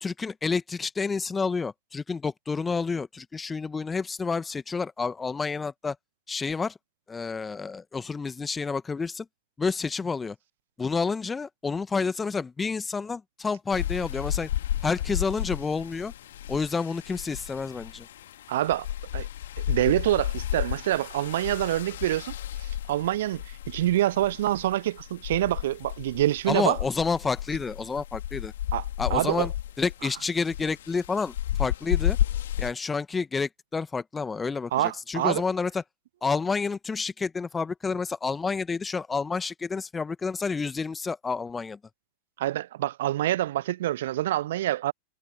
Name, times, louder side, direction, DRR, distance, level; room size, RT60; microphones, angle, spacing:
voice 1, 0.0-6.0 6.3-6.8 7.1-9.3 9.6-10.3 10.8-14.5 14.8-16.1 16.5-18.1 26.5-28.5 29.0-29.5 29.8-32.2 32.6-35.8 36.2-41.8, left 4 dB, 15° left, 1.5 m, -29 dB
sound 1, 13.7-32.7, left 12 dB, 60° left, 2.7 m, -32 dB
voice 2, 18.5-18.9 19.1-19.3 19.7-22.3 22.9-26.8 28.7-28.8 29.1-29.5 34.7-35.4 42.4-44.9, right 14 dB, 55° right, 0.5 m, -26 dB
figure-of-eight pair, 90°, 0 cm